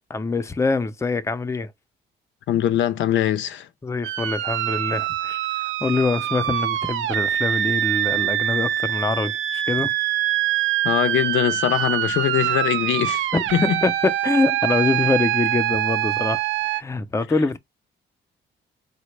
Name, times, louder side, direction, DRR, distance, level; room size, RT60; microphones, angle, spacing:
voice 1, 0.1-1.7 3.8-9.9 13.3-17.6, left 3 dB, 15° left, 0.5 m, -24 dB
voice 2, 2.5-3.7 10.8-13.8, left 11 dB, 70° left, 0.5 m, -22 dB
sound 1, 4.0-16.8, right 13 dB, 80° right, 0.5 m, -24 dB
4.1 x 2.0 x 3.1 m
cardioid pair, 90°, 20 cm